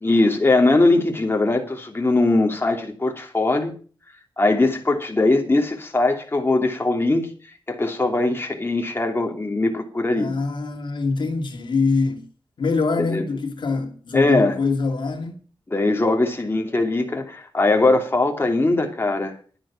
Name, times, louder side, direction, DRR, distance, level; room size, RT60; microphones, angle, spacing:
voice 1, 0.0-3.7 4.4-7.3 7.7-10.3 13.0-13.2 14.1-14.5 15.7-19.4, left 2 dB, 25° left, 2.8 m, -20 dB
voice 2, 10.2-12.3 12.6-15.3, left 4 dB, 70° left, 2.3 m, -24 dB
11.5 x 10.5 x 5.8 m
cardioid pair, 70°, 8 cm